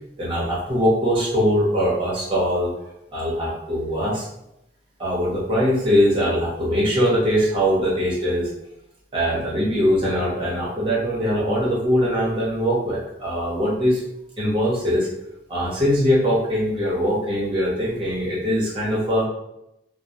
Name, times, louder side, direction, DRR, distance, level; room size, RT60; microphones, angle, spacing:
voice 1, 0.2-2.7 3.1-4.3 5.0-8.5 9.1-14.0 14.4-15.1 15.5-19.2, equal, 30° right, -6 dB, 0.9 m, -21 dB
2.2 x 2.0 x 2.8 m, 0.84 s
head